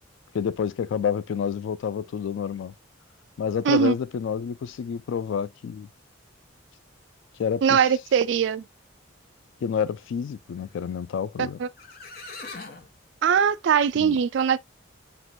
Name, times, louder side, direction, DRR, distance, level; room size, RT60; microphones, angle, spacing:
voice 1, 0.3-2.7 3.4-5.9 7.4-7.8 9.6-11.6 13.9-14.2, left 7 dB, 70° left, 0.3 m, -29 dB
voice 2, 7.6-8.6 11.4-11.7 13.2-14.6, right 7 dB, 65° right, 0.3 m, -21 dB
sound 1, 11.8-12.9, left 3 dB, 50° left, 0.9 m, -40 dB
6.0 x 2.4 x 2.6 m
head